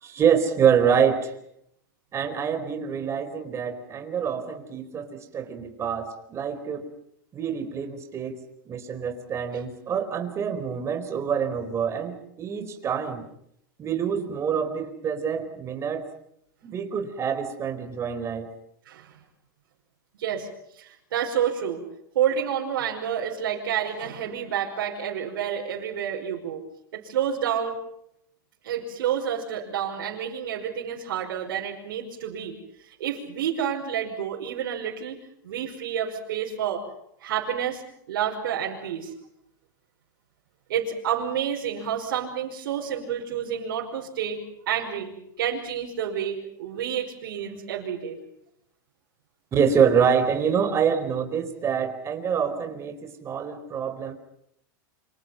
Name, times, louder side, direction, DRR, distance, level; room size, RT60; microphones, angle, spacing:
voice 1, 0.0-1.3 2.1-6.9 7.3-13.2 13.8-16.1 16.6-18.5 49.5-54.1, right 7 dB, 25° right, 8 dB, 4.4 m, -26 dB
voice 2, 20.8-21.8 22.2-26.6 26.9-27.8 28.6-32.5 33.0-35.2 35.4-36.8 37.2-37.8 38.1-39.1 40.7-48.2, right 9 dB, 85° right, -1 dB, 5.4 m, -29 dB
28.5 x 26.0 x 5.8 m, 0.74 s
supercardioid pair, 140°, 11 cm